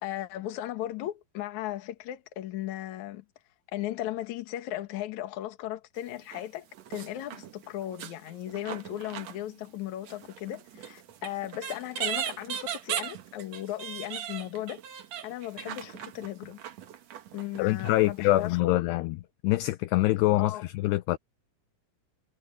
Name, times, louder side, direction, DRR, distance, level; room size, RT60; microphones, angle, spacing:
voice 1, 0.0-3.2 3.7-14.8 15.2-16.6 17.3-19.0 20.4-20.6, left 13 dB, 60° left, 2.2 m, -36 dB
sound 1, 6.0-6.4 6.7-9.8 10.0-18.1 18.5-18.6, right 10 dB, 90° right, 1.5 m, -39 dB
voice 2, 17.6-19.2 19.4-21.2, left 17 dB, 80° left, 2.5 m, -25 dB
omnidirectional pair, 5.2 m